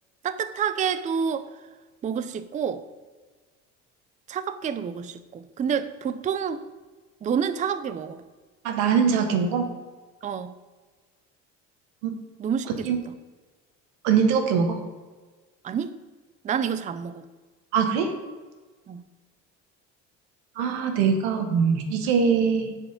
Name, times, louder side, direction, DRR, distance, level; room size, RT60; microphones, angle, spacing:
voice 1, 0.2-1.5 2.0-2.8 4.3-6.6 7.2-8.2 10.2-10.5 12.4-12.7 15.6-15.9 16.4-17.2 18.9-19.0, right 7 dB, 25° right, 13 dB, 0.4 m, -28 dB
voice 2, 8.6-9.6 12.0-12.1 12.8-13.0 14.0-14.8 17.7-18.1 20.6-22.7, right 6 dB, 90° right, 6 dB, 1.3 m, -22 dB
10.5 x 5.0 x 5.1 m, 1.4 s
cardioid pair, 110°, 31 cm